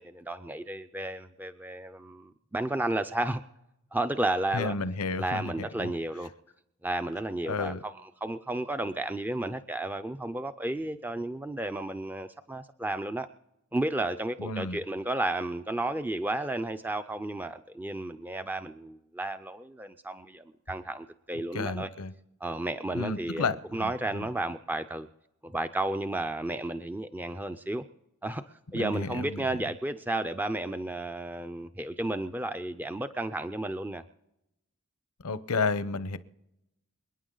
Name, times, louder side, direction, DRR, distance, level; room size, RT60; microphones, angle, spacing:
voice 1, 0.0-3.4 3.9-4.8 5.2-6.3 6.8-13.3 13.7-21.9 22.4-25.1 25.4-27.8 28.2-28.4 28.7-34.0, right 1 dB, 10° right, 9 dB, 0.4 m, -32 dB
voice 2, 4.5-5.5 5.8-5.9 7.5-7.8 14.4-14.8 21.5-22.1 22.9-23.9 24.1-24.2 28.7-29.4 35.2-36.2, left 4 dB, 80° left, 14 dB, 0.8 m, -31 dB
28.0 x 9.6 x 3.9 m, 0.87 s
head